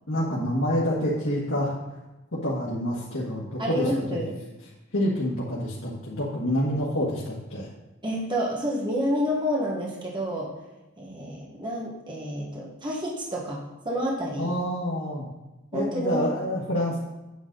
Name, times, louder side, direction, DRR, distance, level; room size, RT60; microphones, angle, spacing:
voice 1, 0.1-1.8 2.3-4.2 4.9-7.7 14.4-15.2 15.7-17.0, equal, 85° left, -7 dB, 1.8 m, -27 dB
voice 2, 3.6-4.3 8.0-10.5 11.0-14.6 15.7-16.3, equal, 25° right, -3 dB, 1.6 m, -29 dB
9.4 x 7.6 x 4.0 m, 1.0 s
head